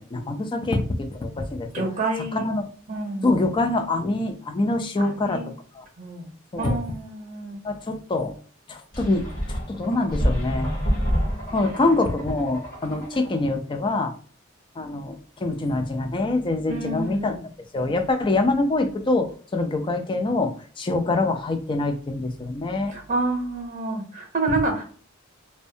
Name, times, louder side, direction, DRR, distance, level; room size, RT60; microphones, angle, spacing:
voice 1, 0.0-1.8 2.3-2.6 3.2-5.4 5.7-5.8 6.5-6.8 7.6-8.3 8.7-9.2 9.5-10.7 11.5-14.1 14.8-17.3 17.7-22.9, left 2 dB, 25° left, 6 dB, 0.3 m, -25 dB
voice 2, 1.7-2.4 2.9-3.4 5.0-5.5 6.0-6.3 6.6-7.6 11.6-11.8 16.7-17.4 22.9-24.8, right 2 dB, 35° right, 1 dB, 0.7 m, -28 dB
sound 1, 8.9-13.5, equal, 45° left, 0.9 m, -28 dB
2.5 x 2.1 x 2.6 m, 0.43 s
head